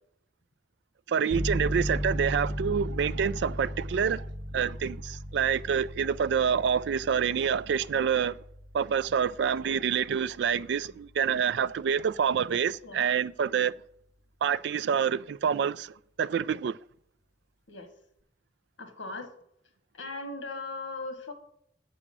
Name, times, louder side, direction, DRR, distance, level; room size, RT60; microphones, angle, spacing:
voice 1, 1.1-4.3 4.5-8.4 8.7-13.7 14.4-16.8, right 7 dB, 65° right, 0.3 m, -27 dB
sound 1, 1.3-11.8, equal, 15° left, 0.9 m, -37 dB
voice 2, 18.8-19.3 19.9-21.3, left 2 dB, 75° left, 1.2 m, -38 dB
7.8 x 4.9 x 7.4 m
head